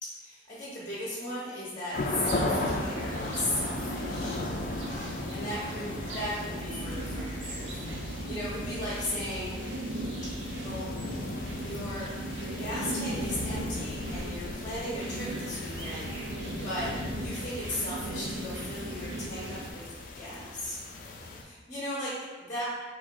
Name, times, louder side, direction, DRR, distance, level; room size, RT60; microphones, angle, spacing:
voice 1, 0.0-4.4 4.8-9.6 10.2-10.3 10.6-10.9 11.5-12.1 12.4-16.1 16.6-19.8 20.1-20.8 21.4-22.6, left 1 dB, 30° left, -8 dB, 1.0 m, -37 dB
sound 1, 1.9-21.4, left 2 dB, 45° left, 0.4 m, -37 dB
sound 2, 2.2-19.7, right 1 dB, 80° right, 0.6 m, -38 dB
4.3 x 2.7 x 3.8 m, 1.4 s
head